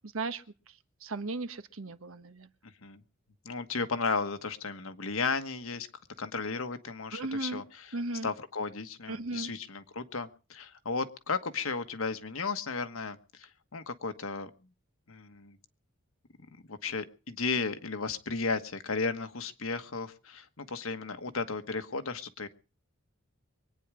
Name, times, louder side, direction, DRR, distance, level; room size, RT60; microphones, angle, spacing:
voice 1, 1.0-2.5 7.1-7.6 7.9-8.3 9.1-9.5, right 2 dB, 75° right, 11 dB, 1.2 m, -35 dB
voice 2, 3.4-5.9 6.2-14.5 15.1-15.6 16.7-22.5, left 4 dB, 75° left, 9 dB, 1.4 m, -34 dB
24.0 x 9.5 x 4.9 m, 0.35 s
head